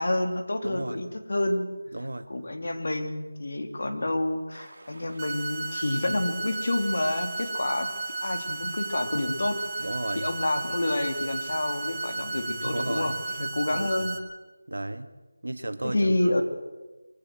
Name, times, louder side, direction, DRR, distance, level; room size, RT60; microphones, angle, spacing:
voice 1, 0.0-1.7 2.3-7.9 8.2-9.9 10.1-13.1 13.4-14.1 15.8-16.4, left 1 dB, 55° left, 6 dB, 3.0 m, -28 dB
voice 2, 0.6-1.0 1.9-2.3 9.8-10.3 12.6-13.1 13.4-13.9 14.7-15.1 15.4-16.1, right 1 dB, 80° right, 9 dB, 2.0 m, -34 dB
sound 1, 4.5-13.5, right 2 dB, 50° right, 5.3 m, -51 dB
sound 2, 5.2-14.2, right 3 dB, 20° right, 1.6 m, -34 dB
23.5 x 16.0 x 7.7 m, 1.2 s
figure-of-eight pair, 175°, 0 cm